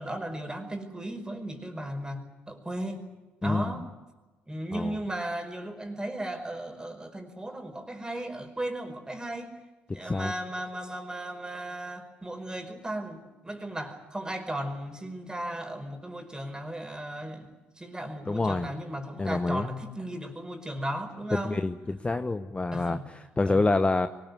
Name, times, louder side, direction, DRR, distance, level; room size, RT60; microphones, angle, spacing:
voice 1, 0.0-3.0 3.4-3.9 4.5-9.5 9.9-17.5 17.8-21.6 22.7-23.0 23.4-23.7, right 1 dB, 15° right, 6 dB, 5.1 m, -36 dB
voice 2, 3.4-3.7 4.7-5.0 10.0-10.3 18.3-18.7 19.2-19.7 21.3-24.1, left 3 dB, 20° left, 10 dB, 1.0 m, -27 dB
24.0 x 19.0 x 9.4 m, 1.2 s
figure-of-eight pair, 50°, 6 cm